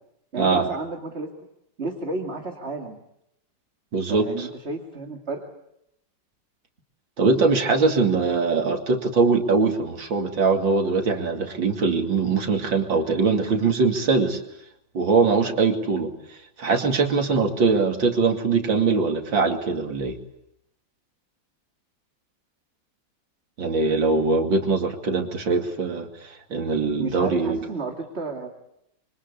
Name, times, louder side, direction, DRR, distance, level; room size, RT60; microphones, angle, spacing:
voice 1, 0.3-1.5 1.8-3.0 4.1-5.6 27.0-28.5, right 3 dB, 35° right, 3 dB, 2.6 m, -32 dB
voice 2, 3.9-4.5 7.2-14.4 14.9-16.1 16.6-20.2 23.6-27.6, right 4 dB, 85° right, 4 dB, 3.2 m, -22 dB
27.0 x 24.5 x 8.4 m, 0.80 s
omnidirectional pair, 2.0 m